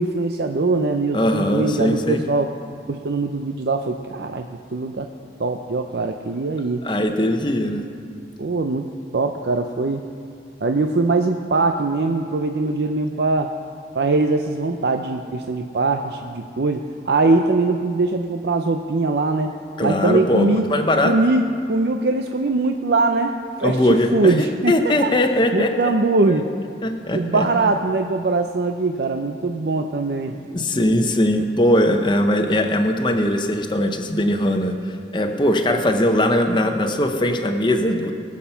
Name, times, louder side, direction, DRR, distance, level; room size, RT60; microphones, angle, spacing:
voice 1, 0.0-2.5 2.9-5.1 5.4-6.8 8.4-10.0 10.6-13.5 13.9-19.5 19.8-20.7 21.0-23.8 24.1-25.1 25.5-26.5 27.1-30.4, right 3 dB, 75° right, 5 dB, 0.5 m, -21 dB
voice 2, 1.1-2.2 6.8-7.8 19.8-21.1 23.6-25.7 26.3-26.4 26.8-27.5 30.3-38.1, left 1 dB, 25° left, 5 dB, 0.9 m, -20 dB
20.0 x 7.3 x 5.7 m, 2.3 s
head